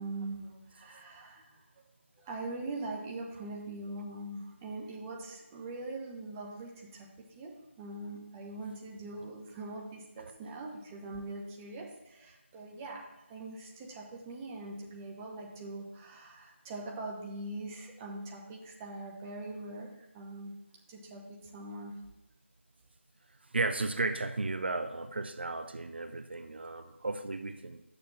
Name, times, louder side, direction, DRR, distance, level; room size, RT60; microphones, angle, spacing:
voice 1, 0.0-1.6 2.2-13.0 13.3-20.6 20.9-22.0, right 2 dB, 10° right, -1 dB, 0.7 m, -42 dB
voice 2, 23.5-27.8, right 3 dB, 55° right, 9 dB, 0.6 m, -34 dB
10.0 x 6.7 x 4.2 m, 0.95 s
figure-of-eight pair, 165°, 7 cm